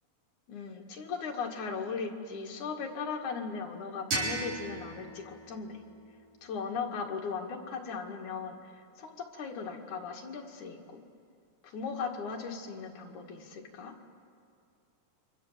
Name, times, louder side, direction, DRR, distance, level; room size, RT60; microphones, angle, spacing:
voice 1, 0.5-5.8 6.4-11.0 11.6-13.9, left 5 dB, 70° left, 2 dB, 3.5 m, -38 dB
sound 1, 4.1-6.9, right 2 dB, 85° right, 6.9 m, -37 dB
29.5 x 24.5 x 7.4 m, 2.3 s
omnidirectional pair, 3.6 m